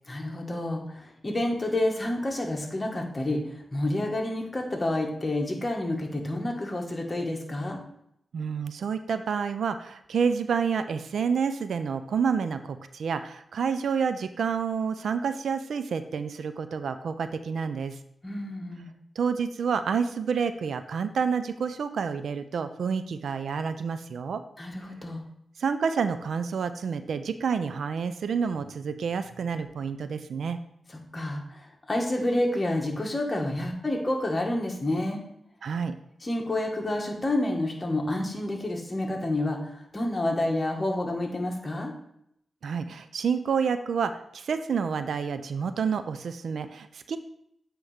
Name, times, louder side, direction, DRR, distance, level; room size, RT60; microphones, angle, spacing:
voice 1, 0.1-7.8 18.2-18.9 24.6-25.2 31.1-35.2 36.2-41.9, left 1 dB, 30° left, 0 dB, 1.7 m, -29 dB
voice 2, 8.3-18.0 19.2-24.4 25.6-30.6 35.6-36.0 42.6-47.2, right 6 dB, 80° right, 11 dB, 0.4 m, -29 dB
8.5 x 3.0 x 5.1 m, 0.75 s
cardioid pair, 60°, 0 cm